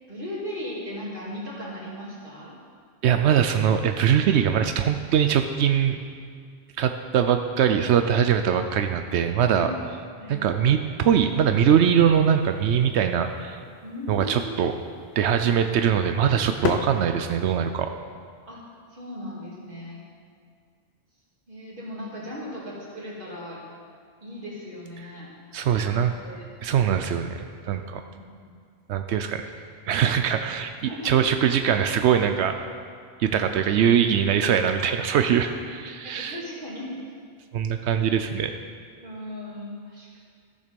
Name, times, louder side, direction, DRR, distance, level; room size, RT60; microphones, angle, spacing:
voice 1, 0.1-2.5 9.6-9.8 10.2-10.4 13.8-14.6 18.5-18.6 18.9-20.0 21.5-23.6 24.2-25.3 25.7-26.4 28.1-28.6 29.5-29.6 30.9-31.2 36.0-37.1 38.2-38.3 39.0-40.2, left 1 dB, 50° right, -6 dB, 2.5 m, -37 dB
voice 2, 3.0-6.0 6.8-9.7 10.3-13.6 14.1-14.7 15.2-17.9 25.5-26.1 26.6-28.0 28.9-29.5 29.8-32.5 33.2-36.4 37.5-38.5, right 8 dB, 80° right, 7 dB, 0.9 m, -22 dB
sound 1, 11.0-17.7, left 7 dB, 70° left, 0.8 m, -37 dB
14.0 x 6.6 x 5.2 m, 2.1 s
omnidirectional pair, 1.1 m